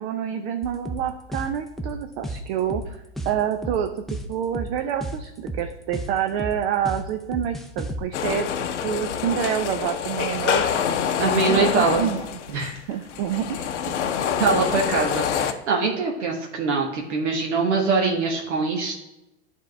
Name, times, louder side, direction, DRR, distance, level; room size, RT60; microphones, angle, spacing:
voice 1, 0.0-2.8 3.3-3.9 4.3-8.5 8.8-10.7 11.4-12.2 12.9-13.9, right 9 dB, 55° right, 6 dB, 0.6 m, -27 dB
sound 1, 0.6-8.0, right 1 dB, ahead, 0.4 m, -33 dB
sound 2, 8.1-15.5, left 8 dB, 80° left, 0.7 m, -26 dB
voice 2, 11.2-12.0 12.5-12.8 14.4-19.0, right 4 dB, 75° right, -1 dB, 1.2 m, -23 dB
10.0 x 3.7 x 3.2 m, 0.91 s
hypercardioid pair, 105°, 35 cm